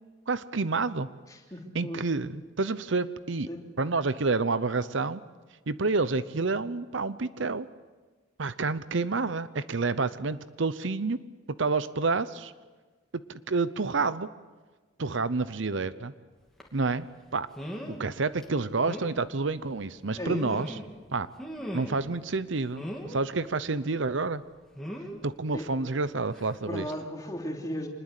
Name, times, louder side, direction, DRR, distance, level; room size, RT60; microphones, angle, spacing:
voice 1, 0.3-1.1 1.7-3.5 3.8-5.2 5.7-7.7 8.4-11.2 11.6-12.5 13.3-14.3 15.0-16.1 16.7-17.1 17.3-17.5 17.9-20.8 21.1-21.3 21.7-24.4 25.2-26.9, right 3 dB, 70° right, 15 dB, 0.8 m, -29 dB
voice 2, 1.3-2.0 3.5-3.6 17.8-17.9 20.2-20.4 25.5-25.7 26.6-27.9, equal, 15° left, 1 dB, 3.0 m, -35 dB
sound 1, 16.6-16.8 17.5-18.0 18.4-18.5 18.9-19.1 20.0-20.9 21.4-22.1 22.7-23.2 24.7-25.2 26.3-26.5 26.9-27.0, equal, ahead, 2.8 m, -38 dB
25.5 x 20.5 x 8.3 m, 1.3 s
head